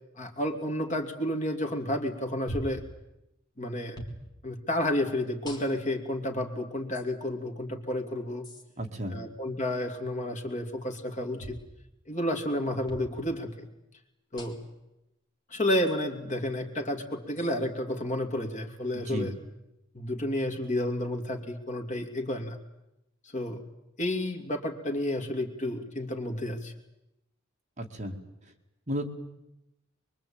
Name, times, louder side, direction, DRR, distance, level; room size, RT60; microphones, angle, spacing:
voice 1, 0.2-2.8 3.6-4.0 4.4-8.5 9.1-11.6 12.1-13.7 14.3-14.6 15.5-19.3 19.9-22.6 23.3-23.6 24.0-26.7, left 1 dB, 40° left, 3 dB, 3.0 m, -31 dB
sound 1, 2.5-2.8 3.9-4.2 5.4-6.0 6.9-7.1 8.4-8.6 11.4-11.6 12.9-13.1 14.4-14.7 15.9-16.0 17.4-17.6, right 1 dB, 20° left, 3.6 m, -40 dB
voice 2, 8.8-9.2 18.9-19.3 27.8-28.2 28.4-28.5 28.9-29.0, equal, 35° right, 2 dB, 2.4 m, -33 dB
24.0 x 23.0 x 8.9 m, 0.91 s
head